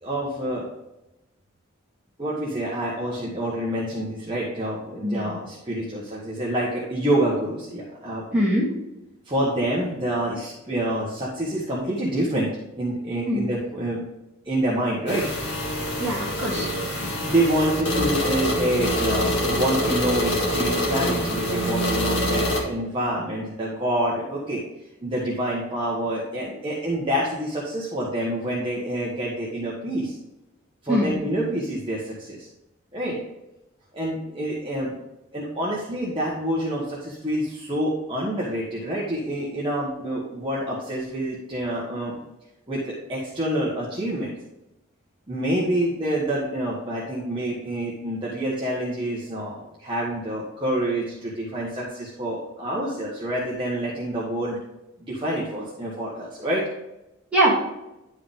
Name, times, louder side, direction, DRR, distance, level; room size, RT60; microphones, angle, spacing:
voice 1, 0.0-0.7 2.2-8.4 9.2-12.5 12.8-14.0 14.4-15.3 17.0-24.6 25.0-30.2 30.8-32.5 32.9-33.2 33.9-35.0 35.3-42.2 42.7-44.3 45.3-54.6 55.1-56.7, right 1 dB, 25° right, -6 dB, 1.4 m, -27 dB
voice 2, 8.3-8.7 13.3-13.5 16.0-16.7 30.9-31.1 57.3-57.6, right 1 dB, 5° right, -7 dB, 2.6 m, -22 dB
sound 1, 15.1-22.6, left 1 dB, 55° left, 1.9 m, -25 dB
10.5 x 4.8 x 3.6 m, 0.93 s
head